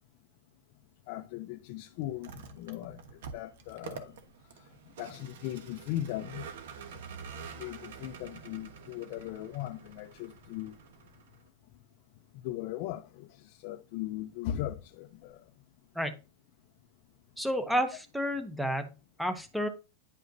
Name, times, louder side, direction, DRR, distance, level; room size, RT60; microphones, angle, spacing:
voice 1, 1.1-4.2 4.6-4.7 5.0-6.5 7.6-10.8 12.3-15.4 17.7-17.8, left 13 dB, 45° left, 0.5 m, -38 dB
Vehicle, 2.1-11.5, right 6 dB, 65° right, 1.2 m, -47 dB
voice 2, 17.4-18.9 19.2-19.7, equal, ahead, 0.7 m, -30 dB
10.5 x 5.0 x 2.7 m
supercardioid pair, 165°, 0 cm